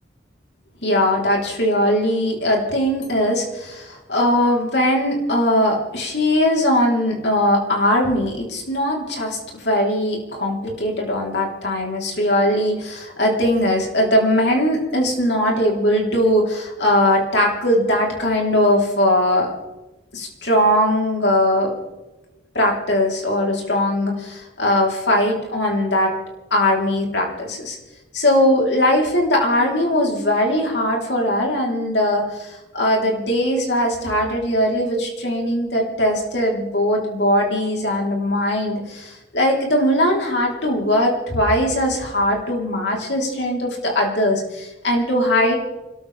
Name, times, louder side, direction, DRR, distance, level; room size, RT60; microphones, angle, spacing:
voice 1, 0.8-19.5 20.1-21.7 22.5-26.1 26.5-27.8 28.1-45.5, left 1 dB, 65° left, 0 dB, 3.7 m, -20 dB
29.0 x 13.5 x 3.4 m, 1.1 s
head